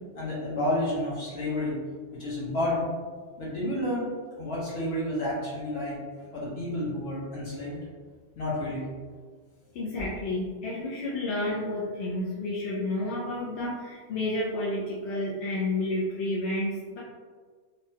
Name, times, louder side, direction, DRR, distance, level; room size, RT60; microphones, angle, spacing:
voice 1, 0.1-1.8 2.1-2.9 3.4-4.1 4.4-6.0 6.3-7.8 8.4-8.9, left 1 dB, 70° left, -7 dB, 1.3 m, -30 dB
voice 2, 9.7-17.0, left 1 dB, 85° left, -7 dB, 0.9 m, -30 dB
3.5 x 2.1 x 2.8 m, 1.5 s
omnidirectional pair, 1.1 m